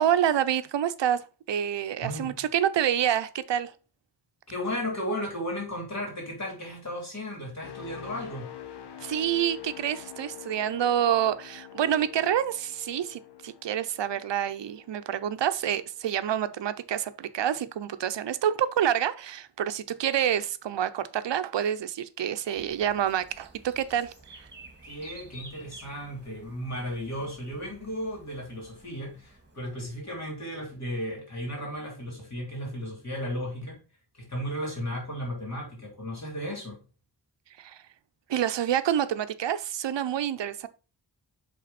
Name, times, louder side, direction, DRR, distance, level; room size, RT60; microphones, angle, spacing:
voice 1, 0.0-3.7 9.0-24.1 24.4-24.5 37.6-37.8 38.3-40.7, right 10 dB, 80° right, 0.7 m, -27 dB
voice 2, 2.0-2.4 4.5-8.5 24.8-33.8 34.2-36.8, equal, 40° left, 3.4 m, -35 dB
sound 1, 7.6-15.4 15.9-16.1, left 11 dB, 70° left, 0.8 m, -45 dB
sound 2, 22.5-30.2, right 2 dB, 25° right, 1.8 m, -51 dB
7.7 x 3.7 x 4.1 m
wide cardioid pair, 155°, 42 cm